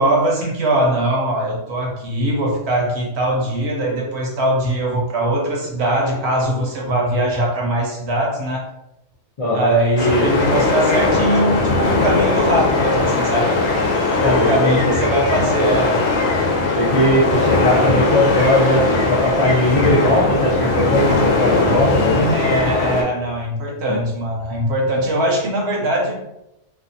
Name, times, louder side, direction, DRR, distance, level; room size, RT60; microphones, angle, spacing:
voice 1, 0.0-8.7 9.5-13.6 14.2-16.0 22.3-26.2, right 1 dB, 65° right, -1 dB, 0.8 m, -21 dB
voice 2, 9.4-10.3 14.2-14.9 16.6-22.3 23.9-24.0, left 1 dB, 60° left, -6 dB, 0.3 m, -18 dB
sound 1, 10.0-23.0, left 3 dB, 80° left, 1.0 m, -19 dB
2.6 x 2.2 x 2.5 m, 0.87 s
omnidirectional pair, 1.4 m